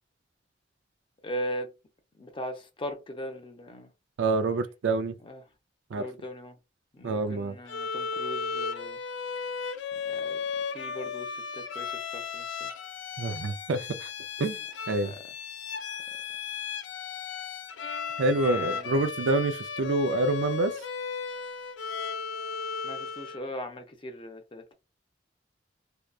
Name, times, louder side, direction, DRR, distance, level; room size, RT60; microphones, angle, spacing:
voice 1, 1.2-1.7 2.2-3.9 5.2-5.4 5.9-6.6 6.9-9.0 9.9-12.7 15.0-15.2 18.4-19.0 22.8-24.7, equal, 30° left, 0.6 m, -39 dB
voice 2, 4.2-5.1 5.9-6.1 7.0-7.6 13.2-14.1 14.4-14.6 14.9-15.1 18.2-20.8, right 2 dB, 85° right, 0.4 m, -27 dB
Bowed string instrument, 7.7-23.5, left 5 dB, 90° left, 0.4 m, -35 dB
2.7 x 2.2 x 2.3 m
head